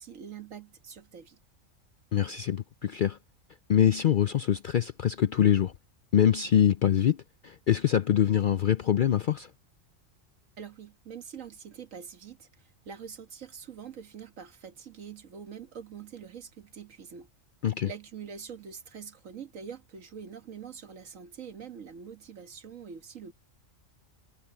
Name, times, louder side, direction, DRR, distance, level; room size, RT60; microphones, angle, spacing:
voice 1, 0.0-1.4 10.6-17.3 17.8-23.3, right 7 dB, 75° right, 1.8 m, -44 dB
voice 2, 2.1-3.2 3.7-5.7 6.1-7.2 7.4-9.5 17.6-17.9, left 9 dB, 65° left, 0.5 m, -24 dB
omnidirectional pair, 1.4 m